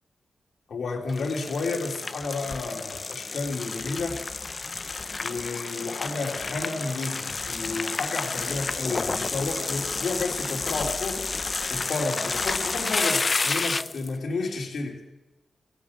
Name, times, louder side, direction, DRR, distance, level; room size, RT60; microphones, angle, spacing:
voice 1, 0.7-4.2 5.2-11.2 11.7-15.0, left 3 dB, 75° left, 1 dB, 3.2 m, -31 dB
sound 1, 1.1-14.1, left 4 dB, 40° left, 0.5 m, -30 dB
16.5 x 10.5 x 7.2 m, 1.0 s
cardioid pair, 75°, 0 cm